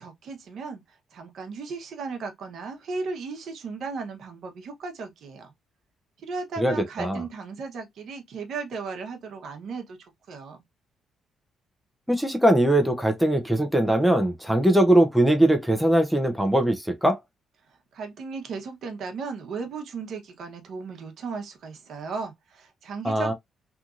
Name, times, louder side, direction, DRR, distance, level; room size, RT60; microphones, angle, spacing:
voice 1, 0.0-5.5 6.2-10.6 17.9-23.3, right 4 dB, 65° right, 0.9 m, -36 dB
voice 2, 6.6-7.2 12.1-17.2 23.0-23.3, right 1 dB, ahead, 0.5 m, -21 dB
2.9 x 2.6 x 2.4 m
cardioid pair, 115°, 0 cm